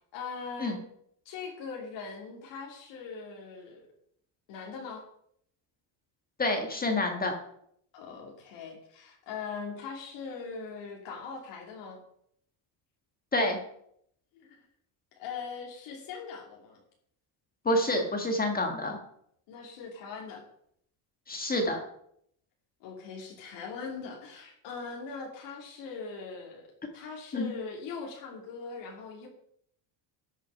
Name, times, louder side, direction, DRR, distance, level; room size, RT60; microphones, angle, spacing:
voice 1, 0.1-0.8 1.2-3.8 4.5-5.0 7.9-12.0 14.3-14.6 15.2-16.8 19.5-20.4 22.8-26.7 26.9-29.3, left 5 dB, 70° left, 0 dB, 2.9 m, -41 dB
voice 2, 6.4-7.3 13.3-13.6 17.6-19.0 21.3-21.8 27.3-27.5, left 1 dB, 20° left, 4 dB, 1.6 m, -28 dB
12.5 x 6.5 x 5.6 m, 0.70 s
cardioid pair, 145°, 45 cm